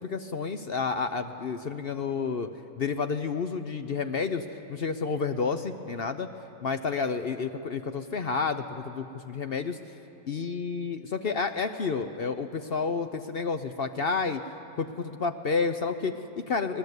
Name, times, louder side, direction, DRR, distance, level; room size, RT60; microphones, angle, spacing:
voice 1, 0.0-2.5 2.8-6.3 6.6-9.8 10.3-14.4 14.8-16.8, left 5 dB, 50° left, 9 dB, 0.7 m, -30 dB
25.5 x 18.5 x 8.1 m, 2.9 s
omnidirectional pair, 1.7 m